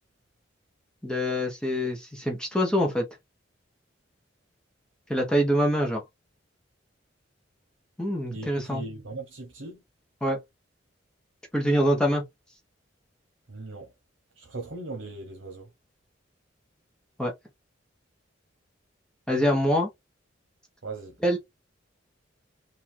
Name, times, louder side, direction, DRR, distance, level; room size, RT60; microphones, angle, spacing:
voice 1, 1.0-3.0 5.1-6.0 8.0-8.8 10.2-10.4 11.5-12.2 17.2-17.3 19.3-19.9 21.2-21.4, equal, 5° left, 0.9 m, -24 dB
voice 2, 8.3-9.8 13.5-13.9 14.4-15.7 20.8-21.2, right 3 dB, 85° right, 1.0 m, -38 dB
3.7 x 2.5 x 4.5 m
head